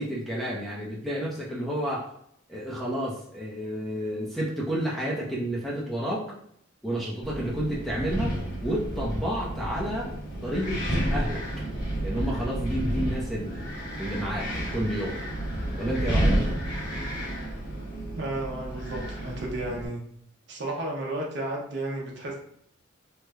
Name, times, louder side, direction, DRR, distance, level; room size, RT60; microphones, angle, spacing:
voice 1, 0.0-2.1 2.5-6.3 6.8-8.3 8.6-10.1 10.4-10.8 11.1-11.4 12.0-15.2 15.8-16.4, equal, ahead, -5 dB, 0.6 m, -30 dB
Wind, 7.2-19.9, right 1 dB, 50° left, 1.2 m, -30 dB
voice 2, 18.2-20.0 20.5-22.4, right 1 dB, 55° right, -1 dB, 0.8 m, -33 dB
3.1 x 2.1 x 3.5 m, 0.69 s
head